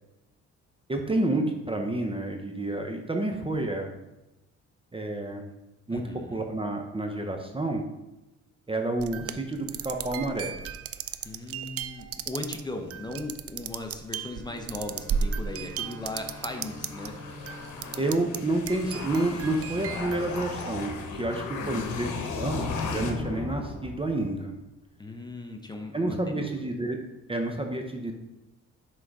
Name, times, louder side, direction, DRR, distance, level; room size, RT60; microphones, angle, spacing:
voice 1, 0.9-3.9 4.9-5.4 5.9-6.0 6.3-7.8 8.7-10.5 18.0-20.9 21.2-22.6 22.9-24.5 25.9-27.0 27.3-28.1, right 2 dB, 20° right, 3 dB, 0.7 m, -29 dB
voice 2, 5.9-6.4 11.2-17.1 21.6-22.3 25.0-26.6, left 2 dB, 15° left, 4 dB, 0.8 m, -38 dB
sound 1, 9.0-17.1 17.4-18.4 18.7-21.1, right 7 dB, 50° right, 0.5 m, -35 dB
Bowed string instrument, 14.1-19.3, equal, 70° right, 0.9 m, -48 dB
sound 2, 15.0-24.4, left 4 dB, 75° left, 1.1 m, -36 dB
6.3 x 3.8 x 4.7 m, 0.99 s
cardioid pair, 90°, 30 cm